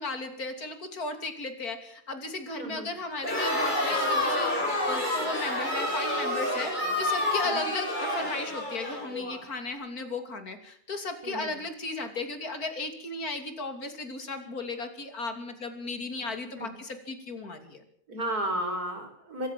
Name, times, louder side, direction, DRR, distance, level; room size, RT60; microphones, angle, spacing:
voice 1, 0.0-17.8, left 3 dB, 75° left, 7 dB, 3.4 m, -35 dB
voice 2, 2.6-2.9 7.4-7.6 11.2-11.5 16.6-16.7 18.1-19.5, right 1 dB, 90° right, 5 dB, 5.6 m, -33 dB
Crowd, 3.2-9.4, left 1 dB, 30° left, 6.4 m, -29 dB
24.5 x 14.0 x 7.5 m, 0.65 s
omnidirectional pair, 1.6 m